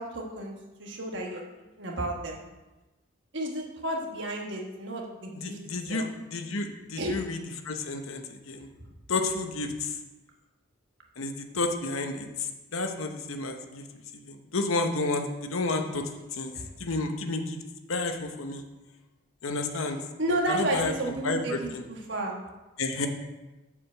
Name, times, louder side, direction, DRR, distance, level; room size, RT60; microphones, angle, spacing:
voice 1, 0.0-2.4 3.3-5.6 5.9-6.1 7.0-7.2 16.5-16.7 19.7-19.8 20.2-22.3, right 1 dB, 55° right, 0 dB, 1.4 m, -32 dB
voice 2, 5.4-8.7 9.1-9.9 11.2-12.3 12.7-13.8 14.2-16.5 16.8-17.6 17.9-18.6 19.4-20.0 20.5-21.8 22.8-23.1, left 3 dB, 80° left, 5 dB, 0.9 m, -31 dB
7.1 x 5.0 x 6.9 m, 1.1 s
head